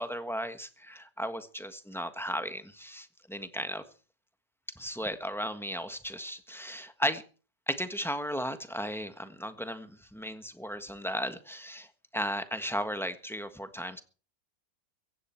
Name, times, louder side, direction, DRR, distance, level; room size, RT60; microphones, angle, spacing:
voice 1, 0.0-3.8 4.7-7.2 7.7-14.0, equal, ahead, 9 dB, 1.2 m, -35 dB
16.0 x 16.0 x 4.6 m, 0.38 s
omnidirectional pair, 1.8 m